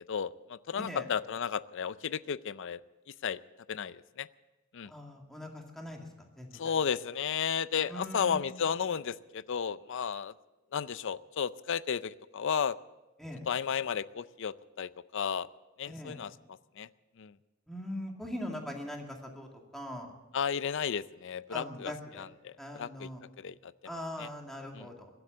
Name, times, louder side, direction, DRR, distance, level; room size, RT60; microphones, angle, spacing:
voice 1, 0.1-2.8 3.2-3.4 3.7-4.3 4.7-4.9 6.5-10.3 10.7-12.8 13.5-15.5 15.8-16.3 16.8-16.9 17.2-17.3 20.3-23.1 23.4-23.7 24.2-24.3 24.7-24.9, left 7 dB, 65° left, 17 dB, 0.5 m, -33 dB
voice 2, 4.8-6.1 6.4-6.8 7.9-8.4 13.2-13.5 15.9-16.2 17.7-20.1 21.5-22.2 22.6-23.2 23.8-25.1, equal, ahead, 0 dB, 2.3 m, -41 dB
23.0 x 7.9 x 7.8 m, 1.1 s
head